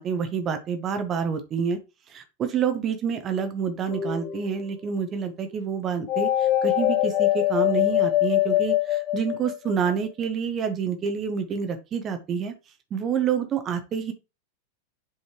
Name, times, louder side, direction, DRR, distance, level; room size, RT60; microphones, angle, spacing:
voice 1, 0.0-1.8 2.1-12.5 12.9-14.1, right 6 dB, 30° right, 7 dB, 1.1 m, -28 dB
sound 1, 3.9-4.6 6.1-9.9, left 13 dB, 35° left, 0.9 m, -23 dB
7.9 x 4.2 x 3.1 m, 0.27 s
figure-of-eight pair, 90°, 0 cm